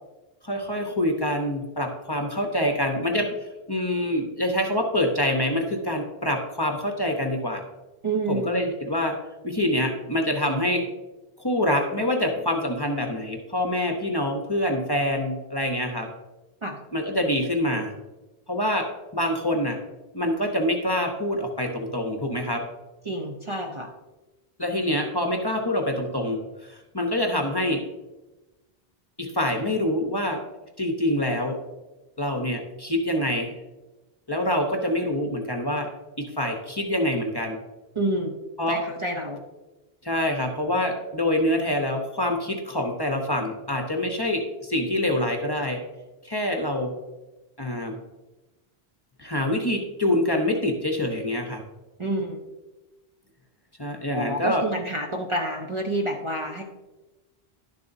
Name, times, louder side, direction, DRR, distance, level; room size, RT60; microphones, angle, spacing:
voice 1, 0.4-3.3 3.7-7.6 8.3-9.1 9.4-10.8 11.4-16.1 16.9-17.9 18.5-18.9 19.1-19.8 20.1-22.6 24.6-26.4 26.7-27.8 29.2-30.4 30.8-31.6 32.2-33.6 34.3-35.9 36.2-37.6 38.6-38.8 40.0-45.8 46.2-46.9 47.6-48.0 49.2-51.6 53.8-54.6, left 1 dB, 25° left, 3 dB, 0.8 m, -25 dB
voice 2, 8.0-8.5 16.6-16.8 23.0-23.9 37.9-38.3 38.7-39.4 52.0-52.4 54.1-56.6, right 1 dB, 35° right, 1 dB, 0.7 m, -28 dB
11.0 x 6.8 x 2.7 m, 1.1 s
omnidirectional pair, 1.0 m